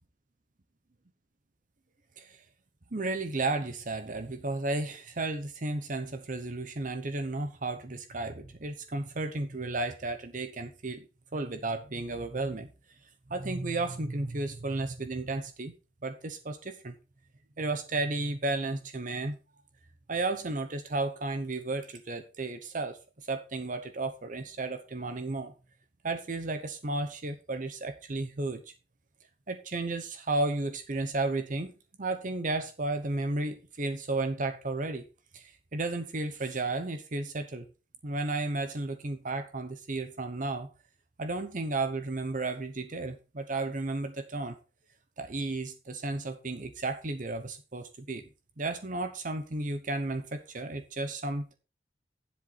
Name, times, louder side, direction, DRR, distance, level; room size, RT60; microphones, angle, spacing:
voice 1, 2.9-11.0 11.3-12.7 13.3-15.7 16.0-16.9 17.6-19.4 20.1-25.5 26.0-28.6 29.5-31.7 32.0-35.1 35.3-37.7 38.0-40.7 41.2-44.5 45.2-48.2 48.6-51.6, right 2 dB, 45° right, 0.9 m, -33 dB
10.5 x 7.8 x 4.1 m
head